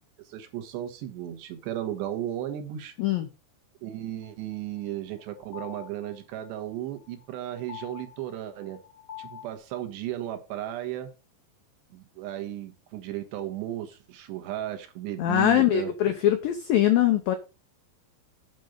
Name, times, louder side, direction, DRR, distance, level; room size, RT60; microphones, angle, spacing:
voice 1, 0.2-2.9 3.8-8.8 9.2-11.1 11.9-15.9, right 12 dB, 75° right, 6 dB, 3.2 m, -35 dB
sound 1, 4.2-9.5, left 10 dB, 60° left, 1.6 m, -46 dB
voice 2, 15.2-17.4, left 12 dB, 85° left, 7 dB, 2.0 m, -22 dB
9.1 x 5.1 x 6.5 m, 0.30 s
omnidirectional pair, 5.3 m